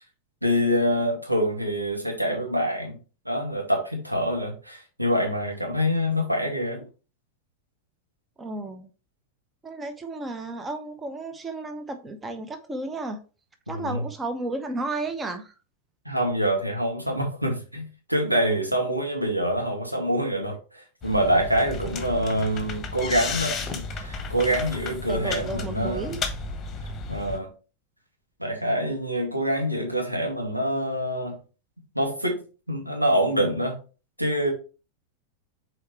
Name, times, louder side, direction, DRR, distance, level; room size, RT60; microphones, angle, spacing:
voice 1, 0.4-3.0 3.3-6.8 13.7-14.0 16.1-26.2 27.1-27.5 28.4-31.4 31.9-32.4 32.7-33.8 34.2-34.5, equal, 90° right, 1.9 m, -25 dB
voice 2, 8.4-8.9 9.6-13.2 13.7-15.5 25.1-26.2, right 2 dB, 15° right, 0.9 m, -33 dB
sound 1, 21.0-27.4, left 4 dB, 25° left, 1.3 m, -33 dB
6.7 x 4.5 x 3.1 m
figure-of-eight pair, 90°, 0 cm